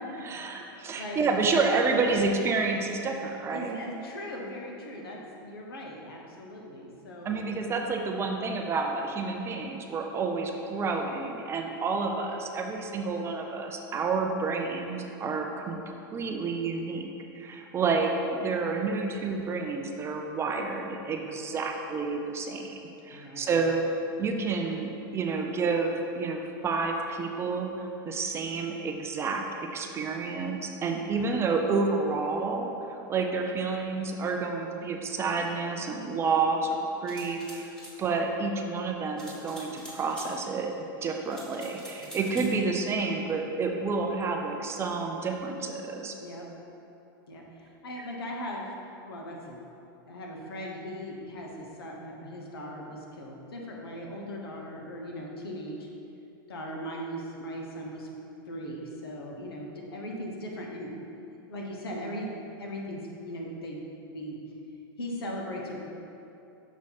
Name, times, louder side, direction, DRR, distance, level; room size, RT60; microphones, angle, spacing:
voice 1, 0.2-3.8 7.2-17.1 17.3-22.7 23.0-23.9 24.2-29.4 29.7-32.7 33.1-37.7 38.0-40.7 41.0-46.1, right 4 dB, 20° right, 2 dB, 0.5 m, -29 dB
voice 2, 0.9-1.3 3.5-7.4 23.1-23.6 42.0-42.5 46.2-46.5 47.3-48.7 49.1-49.6 50.1-55.9 56.5-58.1 58.5-60.9 61.5-63.8 64.1-64.4 65.0-65.9, equal, 85° left, -1 dB, 1.1 m, -39 dB
sound 1, 37.1-38.0 39.2-40.3 41.3-42.5, equal, 5° left, 1.3 m, -46 dB
6.3 x 3.1 x 5.6 m, 2.8 s
hypercardioid pair, 125°, 12 cm